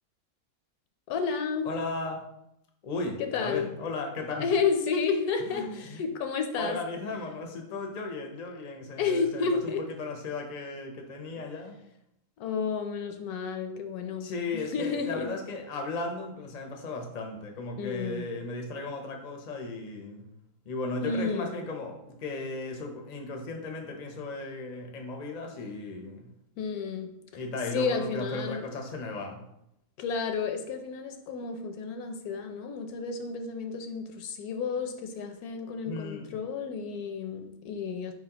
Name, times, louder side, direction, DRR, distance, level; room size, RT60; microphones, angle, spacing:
voice 1, 1.1-1.7 3.2-3.7 4.4-6.8 9.0-9.9 11.4-11.5 12.4-15.3 17.8-18.3 21.0-21.6 26.6-27.4 27.7-28.7 30.0-38.1, left 5 dB, 75° left, 6 dB, 1.0 m, -31 dB
voice 2, 1.6-2.2 2.8-4.4 5.5-6.0 6.6-9.7 10.0-11.8 14.2-20.2 20.6-26.2 27.4-29.4 35.9-36.3, left 3 dB, 50° left, 3 dB, 0.5 m, -36 dB
4.6 x 4.0 x 2.9 m, 0.79 s
omnidirectional pair, 1.6 m